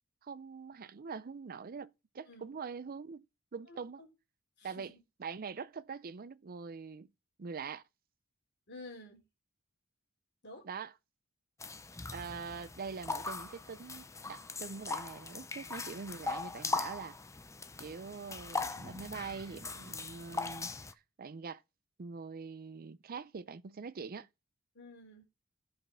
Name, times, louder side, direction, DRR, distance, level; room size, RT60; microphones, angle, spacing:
voice 1, 0.2-3.3 3.5-4.0 4.6-4.9 5.2-7.1 7.4-7.8 10.6-10.9 12.1-17.2 17.8-21.6 22.0-24.3, right 5 dB, 45° right, 0.5 m, -44 dB
voice 2, 3.7-4.1 4.6-5.0 8.7-9.3 10.4-10.7 24.7-25.2, left 2 dB, 55° left, 3.0 m, -51 dB
sound 1, 11.6-20.9, left 3 dB, 15° left, 0.6 m, -40 dB
11.0 x 5.0 x 5.7 m
head